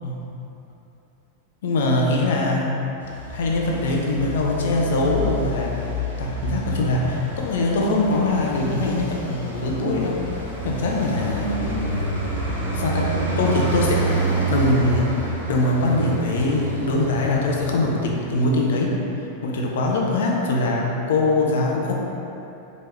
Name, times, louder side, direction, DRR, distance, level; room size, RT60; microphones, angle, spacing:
voice 1, 1.6-2.7 3.3-5.9 6.2-10.2 10.6-12.0 12.7-14.1 14.5-15.2 15.5-18.9 19.4-21.9, left 2 dB, 60° left, -2 dB, 0.5 m, -22 dB
Traffic noise roadway noise, 3.0-18.5, right 1 dB, 85° left, 0.9 m, -28 dB
4.5 x 3.0 x 3.3 m, 2.9 s
figure-of-eight pair, 90°, 0 cm